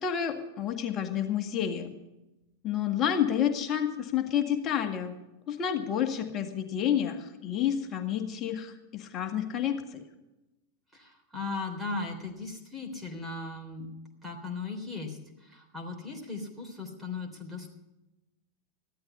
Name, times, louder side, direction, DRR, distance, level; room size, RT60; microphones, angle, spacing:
voice 1, 0.0-1.9 2.6-5.2 5.5-10.0, left 9 dB, 30° left, 5 dB, 1.8 m, -29 dB
voice 2, 10.9-13.9 14.2-17.7, left 3 dB, 5° right, -1 dB, 3.5 m, -37 dB
14.5 x 12.5 x 5.7 m, 0.97 s
figure-of-eight pair, 90°, 0 cm